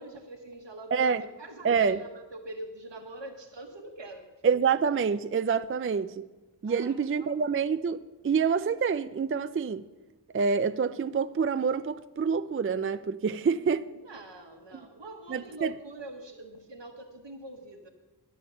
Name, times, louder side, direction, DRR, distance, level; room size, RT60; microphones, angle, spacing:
voice 1, 0.0-1.1 1.4-4.3 6.6-7.6 14.0-17.9, right 1 dB, 80° right, 1.2 m, -44 dB
voice 2, 0.9-1.2 1.6-2.0 4.4-6.3 6.6-9.9 10.3-13.9 14.7-14.9 15.3-15.7, right 6 dB, 35° right, 0.4 m, -27 dB
11.0 x 9.3 x 6.9 m
wide cardioid pair, 40°, 42 cm